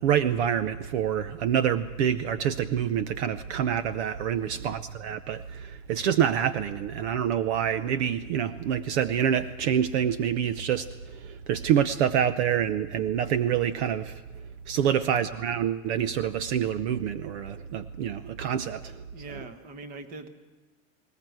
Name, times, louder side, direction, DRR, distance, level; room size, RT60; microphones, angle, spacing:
voice 1, 0.0-14.2 14.7-19.0, right 9 dB, 55° right, 13 dB, 0.8 m, -27 dB
voice 2, 4.3-4.7 14.9-15.2 19.1-20.3, right 3 dB, 25° right, 9 dB, 1.3 m, -43 dB
20.0 x 19.5 x 7.9 m, 1.2 s
supercardioid pair, 175°, 39 cm